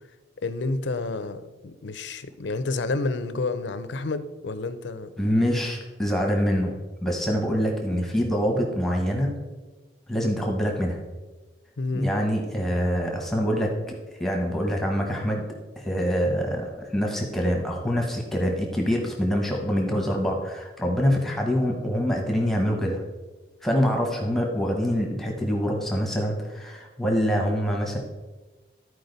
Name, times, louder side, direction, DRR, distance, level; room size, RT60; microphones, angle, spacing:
voice 1, 0.4-5.1 11.8-12.1, left 3 dB, 75° left, 12 dB, 0.6 m, -30 dB
voice 2, 5.2-9.3 10.1-11.0 11.9-15.5 15.8-23.0 23.6-28.0, equal, ahead, 1 dB, 1.0 m, -25 dB
13.0 x 4.7 x 4.0 m, 1.2 s
head